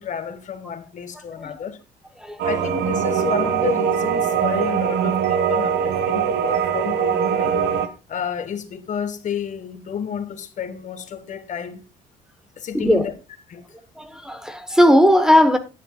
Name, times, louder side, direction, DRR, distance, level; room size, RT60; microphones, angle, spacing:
voice 1, 0.0-1.8 2.4-7.6 8.1-11.8 12.6-13.1 13.5-13.6, left 7 dB, 45° left, 1.6 m, -31 dB
voice 2, 1.1-1.5 2.2-2.4 12.7-13.1 14.0-15.6, equal, 5° right, 1.1 m, -17 dB
sound 1, 2.4-7.9, right 7 dB, 80° right, 1.4 m, -22 dB
15.0 x 10.0 x 2.4 m
cardioid pair, 110°, 17 cm